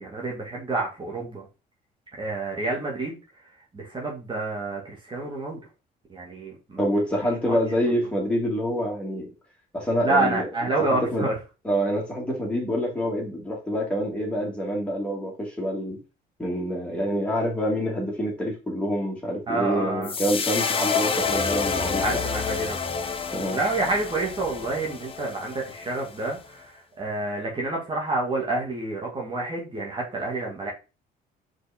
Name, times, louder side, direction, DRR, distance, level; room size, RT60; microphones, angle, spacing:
voice 1, 0.0-1.5 2.2-3.2 3.7-5.6 6.1-6.8 7.5-7.6 10.0-11.3 19.5-20.1 22.0-22.8 23.5-30.7, right 2 dB, 30° right, -2 dB, 2.5 m, -28 dB
voice 2, 6.8-9.3 9.7-10.5 10.8-11.3 11.6-16.0 16.4-22.2 23.3-23.6, equal, 5° left, -3 dB, 3.1 m, -26 dB
sound 1, 20.0-26.4, left 5 dB, 35° left, 0.9 m, -28 dB
4.9 x 4.6 x 4.5 m, 0.30 s
cardioid pair, 110°, 17 cm